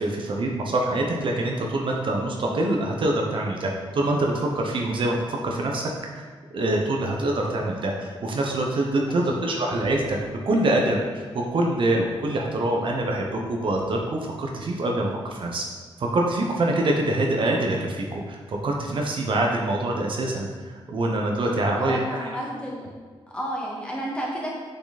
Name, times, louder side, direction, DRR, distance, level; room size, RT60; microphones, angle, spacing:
voice 1, 0.0-15.7 16.0-22.0, right 1 dB, 60° right, 0 dB, 1.1 m, -25 dB
voice 2, 21.7-22.9 23.3-24.5, equal, 10° left, -4 dB, 2.0 m, -31 dB
6.9 x 6.0 x 4.2 m, 1.5 s
wide cardioid pair, 105°, 10 cm